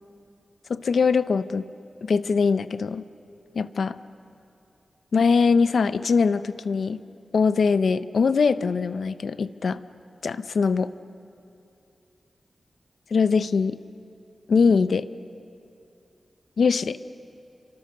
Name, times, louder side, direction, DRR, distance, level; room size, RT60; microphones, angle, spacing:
voice 1, 0.7-1.6 2.0-3.0 3.5-4.0 5.1-7.0 7.3-9.8 10.2-10.9 13.1-13.8 14.5-15.1 16.6-17.0, left 5 dB, 85° left, 13 dB, 0.6 m, -22 dB
28.0 x 24.5 x 6.7 m, 2.7 s
wide cardioid pair, 120°, 0 cm